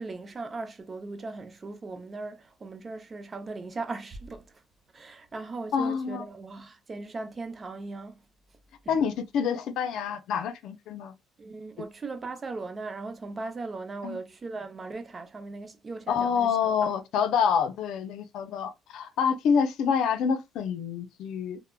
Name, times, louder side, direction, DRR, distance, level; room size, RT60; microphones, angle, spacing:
voice 1, 0.0-4.6 4.9-8.2 8.8-9.0 11.4-16.9, right 3 dB, 30° right, 0.6 m, -38 dB
voice 2, 5.7-6.3 8.9-11.1 11.8-11.9 14.0-14.2 16.1-21.6, left 6 dB, 80° left, 0.5 m, -27 dB
3.2 x 2.1 x 2.2 m
cardioid pair, 105°, 0 cm